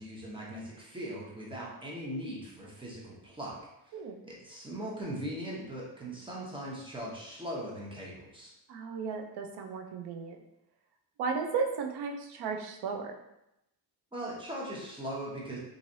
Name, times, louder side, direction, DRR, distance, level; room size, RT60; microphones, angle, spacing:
voice 1, 0.0-8.5 14.1-15.6, equal, 15° right, -4 dB, 0.8 m, -40 dB
voice 2, 8.7-10.4 11.2-13.1, right 5 dB, 85° right, 3 dB, 0.6 m, -34 dB
3.1 x 2.5 x 2.6 m, 0.85 s
cardioid pair, 125°, 39 cm